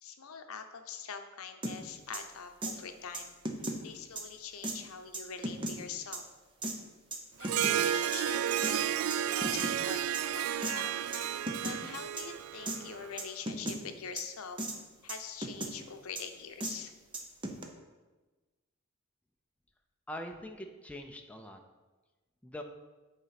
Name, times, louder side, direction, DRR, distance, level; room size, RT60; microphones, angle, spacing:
voice 1, 0.0-3.4 3.8-6.2 7.4-10.9 11.6-14.6 15.0-16.9, left 6 dB, 80° left, 7 dB, 0.7 m, -44 dB
sound 1, 1.6-1.7 2.1-2.2 2.6-2.7 3.1-3.8 4.2-4.3 4.6-4.8 5.1-5.7 6.1-6.2 6.6-6.7 7.1-7.8 8.1-8.2 8.6-8.7 9.1-9.7 10.1-10.2 10.6-10.7 11.1-11.2 11.5-11.8 12.2-12.3 12.7-12.8 13.2-13.8 14.2-14.3 14.6-14.8 15.1-15.7 16.1-16.2 16.6-16.7 17.1-17.6, right 1 dB, 25° right, 0.7 m, -36 dB
Harp, 7.4-13.1, right 10 dB, 80° right, 0.3 m, -32 dB
voice 2, 20.1-21.6 22.4-22.6, left 1 dB, 5° left, 3 dB, 0.5 m, -43 dB
8.2 x 4.1 x 5.8 m, 1.2 s
head